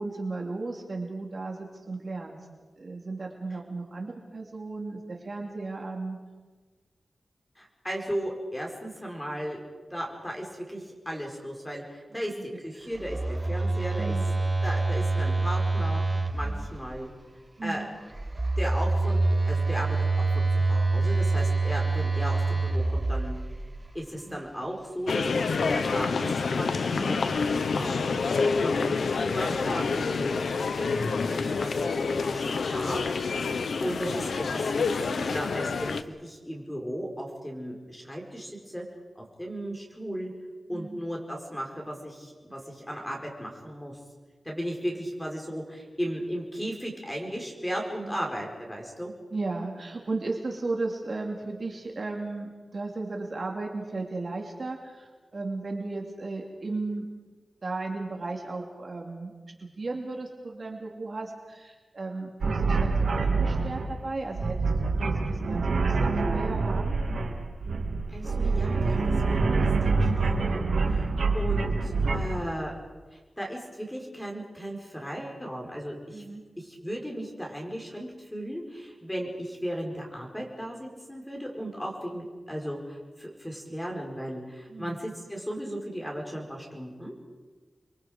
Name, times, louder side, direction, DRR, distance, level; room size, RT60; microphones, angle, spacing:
voice 1, 0.0-2.4 2.8-6.2 12.1-12.2 12.8-12.9 14.0-14.2 16.4-16.7 17.6-17.9 24.3-24.4 26.8-27.2 33.4-33.6 40.7-41.0 48.0-48.3 49.3-57.1 57.6-59.3 59.6-67.0 71.0-71.3 76.1-76.4 84.7-85.0, right 3 dB, 45° right, 1 dB, 2.6 m, -35 dB
voice 2, 7.6-9.6 9.9-14.2 14.6-16.0 16.3-17.1 17.6-17.8 18.6-19.2 19.5-23.3 23.9-25.3 25.6-33.5 33.8-38.8 39.1-40.3 40.7-44.0 44.4-49.1 68.1-69.0 69.3-70.6 70.9-71.1 71.3-72.7 73.4-76.2 76.6-87.1, equal, 5° left, 0 dB, 4.7 m, -36 dB
Telephone, 13.0-17.0 18.1-23.8, right 3 dB, 20° right, 0.9 m, -26 dB
sound 1, 25.1-36.0, left 4 dB, 90° left, 1.0 m, -28 dB
sound 2, 62.4-72.5, right 3 dB, 90° right, 2.2 m, -26 dB
29.5 x 23.0 x 5.1 m, 1.3 s
wide cardioid pair, 135°, 0 cm